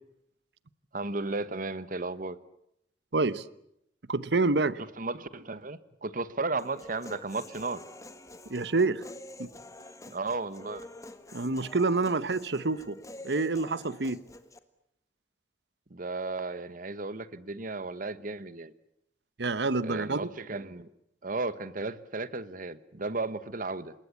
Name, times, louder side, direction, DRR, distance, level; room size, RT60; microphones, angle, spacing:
voice 1, 0.9-2.4 4.8-7.8 10.1-10.9 15.9-18.7 19.8-20.9 21.2-23.9, right 3 dB, 50° right, 1.2 m, -34 dB
voice 2, 3.1-3.4 4.1-4.8 8.5-9.1 9.4-9.5 11.3-13.0 13.2-14.2 19.4-20.3, right 3 dB, 65° right, 1.0 m, -27 dB
Human voice, 6.6-14.6, left 1 dB, 20° left, 1.6 m, -48 dB
27.0 x 21.0 x 8.5 m
head